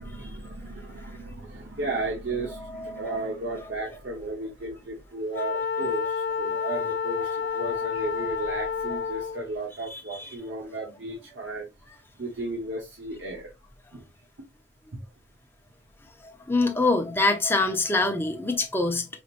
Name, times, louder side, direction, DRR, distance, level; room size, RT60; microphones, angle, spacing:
voice 1, 0.0-11.7 12.2-13.5 13.9-14.0, right 2 dB, 85° right, 1.0 m, -34 dB
voice 2, 2.7-3.2 6.5-6.7 8.9-9.0 9.9-10.6 16.2-19.1, left 2 dB, 10° left, 0.7 m, -26 dB
Wind instrument woodwind instrument, 5.3-9.5, left 6 dB, 65° left, 0.4 m, -29 dB
5.0 x 2.9 x 2.5 m
head